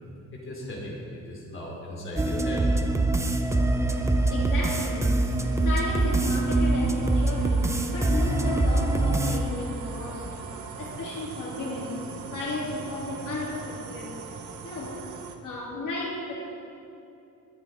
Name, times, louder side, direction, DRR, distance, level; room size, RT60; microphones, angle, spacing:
voice 1, 0.3-0.9 1.3-2.7, left 1 dB, 35° left, -2 dB, 3.0 m, -37 dB
sound 1, 1.9-15.4, right 6 dB, 60° right, 1.0 m, -42 dB
sound 2, 2.2-9.4, right 2 dB, 10° right, 0.5 m, -24 dB
voice 2, 4.3-5.2 5.6-10.3 10.8-12.0 12.3-14.1 14.6-15.0 15.4-16.3, left 2 dB, 65° left, -4 dB, 3.2 m, -34 dB
21.0 x 9.2 x 3.7 m, 2.7 s
cardioid pair, 160°, 34 cm